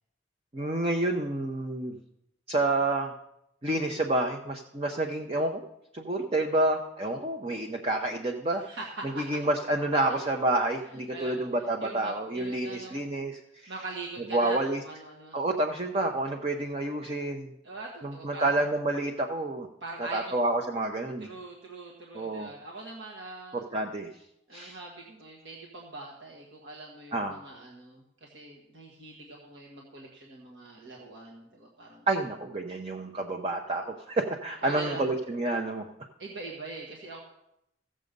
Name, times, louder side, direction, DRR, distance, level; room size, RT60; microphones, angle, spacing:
voice 1, 0.5-2.0 2.5-3.1 3.6-5.6 5.9-8.6 9.0-13.7 14.3-14.8 15.3-17.5 18.0-19.7 20.0-21.3 22.1-22.5 23.5-24.1 24.5-24.8 27.1-27.3 32.1-35.9, right 2 dB, 30° right, 3 dB, 0.8 m, -29 dB
voice 2, 8.6-9.3 10.0-10.2 11.1-13.0 13.7-15.4 17.6-18.5 19.8-20.3 21.2-23.6 24.5-32.1 34.6-35.1 36.2-37.2, right 2 dB, 65° right, -2 dB, 1.7 m, -43 dB
15.0 x 7.5 x 5.3 m, 0.81 s
head